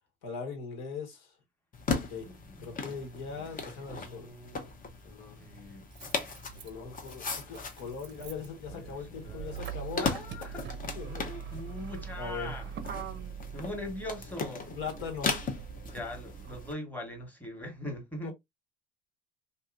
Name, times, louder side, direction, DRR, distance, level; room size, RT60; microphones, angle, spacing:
voice 1, 0.2-1.3 1.9-2.3 2.6-4.3 5.0-5.4 6.6-10.1 10.9-11.4 12.2-12.5 14.7-15.3 18.2-18.3, left 5 dB, 70° left, 1.4 m, -40 dB
sound 1, 1.7-16.7, left 4 dB, 25° left, 0.7 m, -38 dB
voice 2, 2.2-2.8 3.4-3.5 3.7-4.7 5.4-6.3 8.7-9.7 9.9-12.7 13.5-14.8 15.8-18.3, left 1 dB, 5° left, 1.2 m, -42 dB
Motor vehicle (road), 4.3-4.4 5.5-16.7, right 8 dB, 35° right, 0.7 m, -43 dB
2.9 x 2.7 x 2.5 m
supercardioid pair, 95°, 31 cm